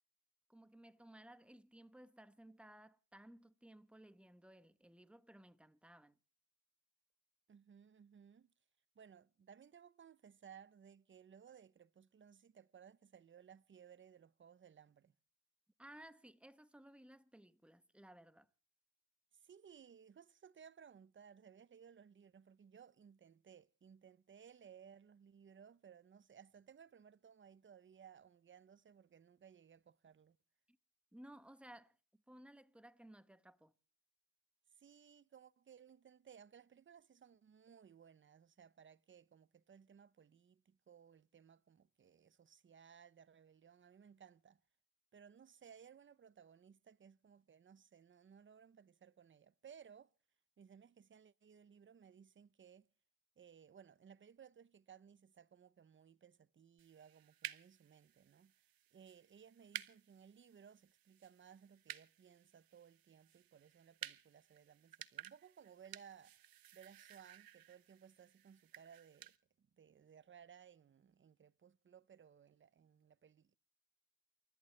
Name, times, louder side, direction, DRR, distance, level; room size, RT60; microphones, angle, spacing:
voice 1, 0.5-6.2 15.8-18.5 30.7-30.8 31.1-33.7, right 1 dB, 5° right, 1.1 m, -59 dB
voice 2, 7.5-8.5 9.0-15.1 19.3-30.4 34.7-44.6 45.1-50.1 50.6-52.9 53.4-58.6 58.9-66.5 66.7-73.5, right 7 dB, 35° right, 0.8 m, -61 dB
sound 1, 56.8-69.4, right 12 dB, 80° right, 1.1 m, -54 dB
29.0 x 13.5 x 3.3 m
cardioid pair, 120°, 35 cm